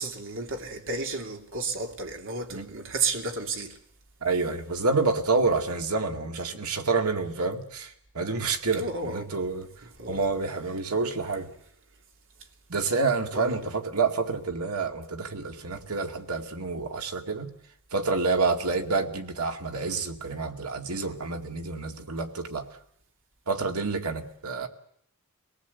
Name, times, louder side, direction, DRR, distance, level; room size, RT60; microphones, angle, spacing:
voice 1, 0.0-3.8 8.7-9.3 10.0-10.2 13.3-13.6, right 3 dB, 65° right, 2.9 m, -32 dB
voice 2, 4.2-9.7 10.1-11.5 12.7-17.5 17.9-22.6 23.5-24.7, right 3 dB, 85° right, 2.3 m, -28 dB
24.5 x 18.5 x 8.2 m
head